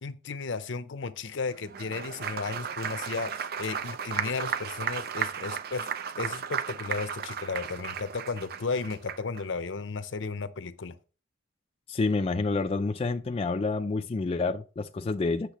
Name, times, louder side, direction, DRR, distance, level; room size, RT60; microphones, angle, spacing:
voice 1, 0.0-5.9 6.2-10.9, left 4 dB, 70° left, 0.6 m, -34 dB
Applause, 1.6-9.4, right 8 dB, 50° right, 0.4 m, -35 dB
voice 2, 11.9-15.5, left 3 dB, 30° left, 0.4 m, -28 dB
8.3 x 6.5 x 3.0 m
head